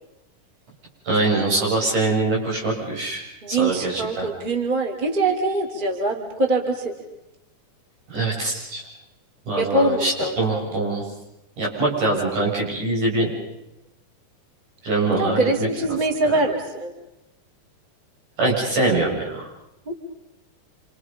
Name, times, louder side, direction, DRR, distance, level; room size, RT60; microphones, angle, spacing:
voice 1, 1.1-3.2 3.5-4.3 8.1-8.8 9.5-11.0 11.6-13.3 14.8-15.7 18.4-19.5, right 2 dB, 75° right, -3 dB, 9.1 m, -23 dB
voice 2, 3.4-6.9 9.6-10.6 15.2-16.9 19.9-20.0, right 2 dB, 15° right, 3 dB, 2.6 m, -23 dB
29.5 x 27.0 x 5.5 m, 0.87 s
omnidirectional pair, 3.7 m